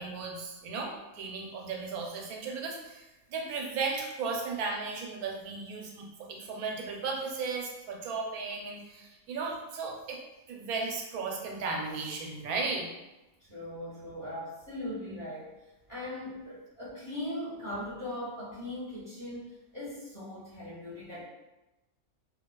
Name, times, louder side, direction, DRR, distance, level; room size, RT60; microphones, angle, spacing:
voice 1, 0.0-10.2 10.5-12.9, right 4 dB, 85° right, 0 dB, 1.1 m, -35 dB
voice 2, 13.4-15.5 15.9-21.3, left 1 dB, 15° left, -11 dB, 1.0 m, -39 dB
2.9 x 2.2 x 2.2 m, 1.0 s
omnidirectional pair, 1.5 m